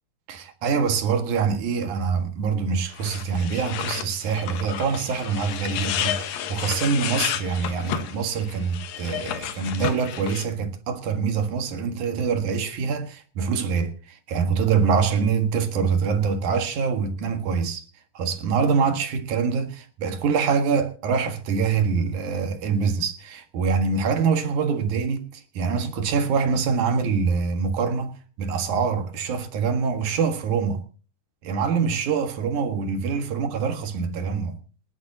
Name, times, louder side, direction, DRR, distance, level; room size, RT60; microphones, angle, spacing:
voice 1, 0.3-17.8 18.1-30.8 31.4-34.6, right 5 dB, 65° right, 3.0 m, -25 dB
sound 1, 2.9-10.4, left 10 dB, 85° left, 3.0 m, -31 dB
28.0 x 9.6 x 2.8 m
omnidirectional pair, 3.9 m